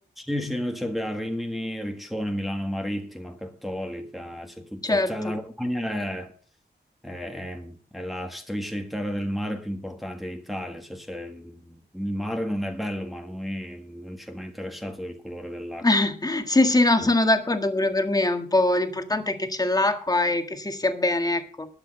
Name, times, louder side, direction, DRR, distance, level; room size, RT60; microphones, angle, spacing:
voice 1, 0.2-6.3 7.0-15.9 17.0-17.1, equal, ahead, 1.5 m, -32 dB
voice 2, 4.8-5.3 15.8-21.7, left 2 dB, 20° left, 1.6 m, -23 dB
12.0 x 8.2 x 6.6 m
wide cardioid pair, 135°, 18 cm